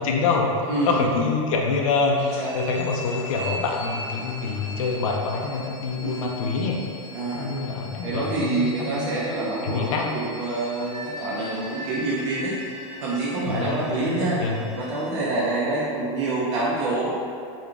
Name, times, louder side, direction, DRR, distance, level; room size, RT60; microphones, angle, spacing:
voice 1, 0.0-6.8 7.3-9.2 9.6-10.1 13.5-14.7, left 4 dB, 70° left, 0 dB, 0.5 m, -26 dB
voice 2, 0.7-1.0 2.4-2.5 6.0-6.3 7.1-7.5 8.0-12.5 13.0-14.4 14.8-17.1, right 2 dB, 55° right, -7 dB, 0.6 m, -26 dB
sound 1, 2.3-15.1, left 1 dB, 10° right, 0.8 m, -39 dB
Guitar, 3.0-12.0, left 2 dB, 25° left, 0.7 m, -48 dB
3.8 x 2.3 x 3.3 m, 2.4 s
supercardioid pair, 170°, 18 cm